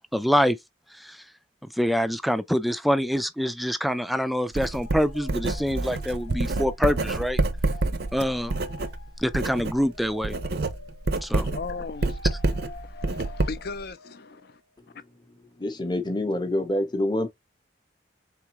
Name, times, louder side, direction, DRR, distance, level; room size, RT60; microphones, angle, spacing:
voice 1, 0.1-0.6 1.0-1.2 1.8-7.4 8.1-8.6 9.2-10.3 11.2-11.5, equal, ahead, 0.3 m, -25 dB
Writing, 4.6-9.8 10.1-13.8, right 2 dB, 60° right, 0.6 m, -28 dB
sound 1, 4.8-14.6, left 3 dB, 85° left, 0.8 m, -48 dB
voice 2, 11.4-14.6, left 4 dB, 55° left, 0.5 m, -38 dB
voice 3, 15.6-17.3, left 1 dB, 25° left, 0.7 m, -26 dB
3.7 x 3.5 x 2.9 m
head